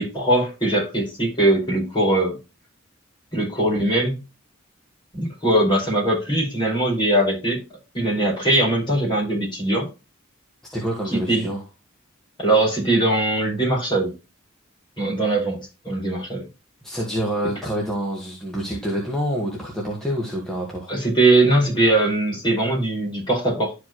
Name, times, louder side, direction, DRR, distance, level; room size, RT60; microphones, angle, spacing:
voice 1, 0.0-2.4 3.3-4.2 5.1-7.6 7.9-9.9 11.1-11.5 12.4-14.1 15.0-16.4 20.9-23.7, right 1 dB, 25° left, 4.9 m, -21 dB
voice 2, 10.7-11.6 16.8-20.9, equal, ahead, 1.6 m, -27 dB
12.0 x 4.9 x 3.0 m
head